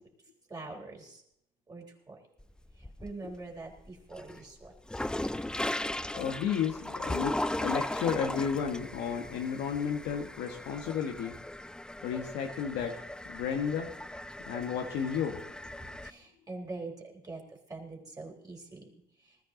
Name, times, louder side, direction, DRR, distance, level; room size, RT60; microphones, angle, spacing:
voice 1, 0.5-1.2 1.7-2.2 3.0-4.7 16.0-18.9, right 3 dB, 20° right, 0 dB, 3.8 m, -44 dB
sound 1, 2.4-3.4 3.8-16.1, left 1 dB, 5° left, 0.4 m, -37 dB
voice 2, 6.1-11.3 12.0-12.9 13.3-13.9 14.5-15.4, left 7 dB, 90° left, 3 dB, 1.5 m, -32 dB
20.0 x 13.5 x 3.9 m, 0.76 s
cardioid pair, 110°, 17 cm